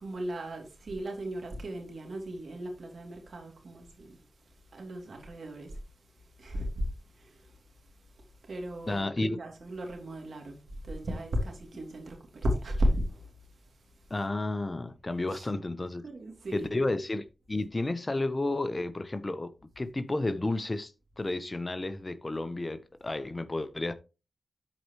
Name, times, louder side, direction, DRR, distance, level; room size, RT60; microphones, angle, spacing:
voice 1, 0.0-4.2 4.7-5.7 6.4-6.9 7.2-7.4 8.5-10.6 10.8-12.2 12.4-13.2 15.3-15.4 16.0-16.7, equal, 70° right, 2.9 m, -34 dB
voice 2, 8.9-9.4 14.1-16.1 16.5-23.9, left 2 dB, 35° left, 1.0 m, -32 dB
12.5 x 4.8 x 3.2 m
cardioid pair, 40°, 0 cm